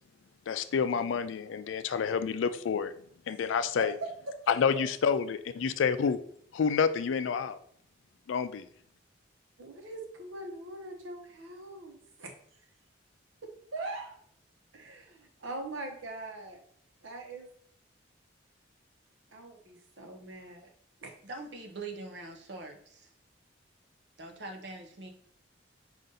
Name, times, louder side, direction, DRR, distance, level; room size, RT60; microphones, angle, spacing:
voice 1, 0.5-2.9 3.3-3.9 4.5-6.2 6.5-7.6 8.3-8.7, left 6 dB, 80° left, 12 dB, 0.4 m, -28 dB
voice 2, 4.3-4.8 9.6-12.3 13.4-14.2 14.7-16.6 17.0-17.5 19.3-20.7 21.0-21.1, right 2 dB, 85° right, 3 dB, 0.9 m, -42 dB
voice 3, 21.2-23.1 24.2-25.1, right 3 dB, 60° right, 3 dB, 0.7 m, -43 dB
5.3 x 2.5 x 3.8 m, 0.64 s
head